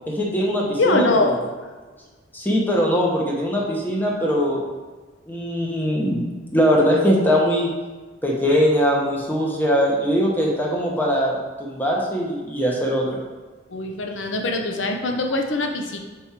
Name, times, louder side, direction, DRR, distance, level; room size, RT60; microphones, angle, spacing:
voice 1, 0.1-1.1 2.3-4.6 5.3-6.2 6.5-7.7 8.2-13.2, equal, 10° left, -3 dB, 1.0 m, -21 dB
voice 2, 0.8-1.4 13.7-16.0, left 2 dB, 80° left, 3 dB, 0.7 m, -22 dB
5.4 x 4.7 x 4.3 m, 1.3 s
head